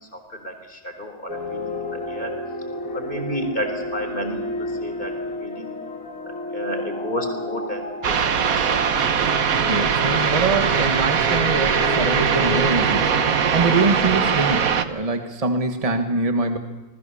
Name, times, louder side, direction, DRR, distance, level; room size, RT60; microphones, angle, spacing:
voice 1, 0.0-2.3 2.9-5.7 6.3-8.9, equal, 40° left, 6 dB, 4.1 m, -32 dB
sound 1, 1.3-13.8, left 2 dB, 90° left, 2.7 m, -31 dB
sound 2, 8.0-14.9, right 7 dB, 90° right, 1.6 m, -21 dB
voice 2, 9.7-13.1 13.5-16.6, right 3 dB, 25° right, 5 dB, 1.6 m, -24 dB
27.0 x 20.5 x 7.1 m, 1.1 s
omnidirectional pair, 1.4 m